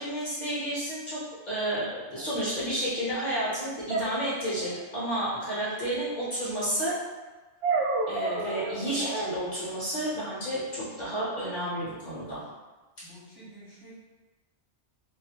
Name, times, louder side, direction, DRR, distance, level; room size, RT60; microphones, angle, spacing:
voice 1, 0.0-6.9 8.1-12.4 13.0-13.1, right 1 dB, 45° left, -9 dB, 0.6 m, -31 dB
sound 1, 2.2-2.3 3.9-4.8 7.6-9.3, right 3 dB, 75° right, 0.9 m, -30 dB
voice 2, 13.0-14.0, right 1 dB, 30° right, -9 dB, 0.5 m, -49 dB
2.4 x 2.4 x 2.7 m, 1.2 s
omnidirectional pair, 1.2 m